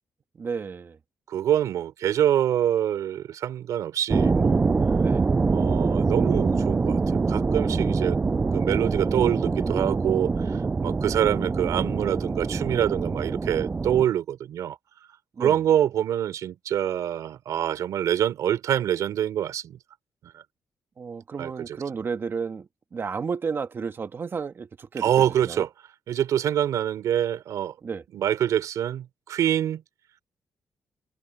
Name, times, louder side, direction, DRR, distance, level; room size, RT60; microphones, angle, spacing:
voice 1, 0.4-1.0 5.0-5.3 15.4-15.6 21.0-25.1 25.4-25.6 27.8-28.0, right 5 dB, 40° right, 1.3 m, -32 dB
voice 2, 1.3-4.7 5.5-8.2 8.5-14.8 15.4-19.8 20.2-20.4 21.4-21.8 25.0-25.7 26.1-27.7 28.1-29.8, right 10 dB, 85° right, 3.5 m, -25 dB
sound 1, 4.1-14.0, right 4 dB, 25° right, 0.3 m, -24 dB
cardioid pair, 105°, 6 cm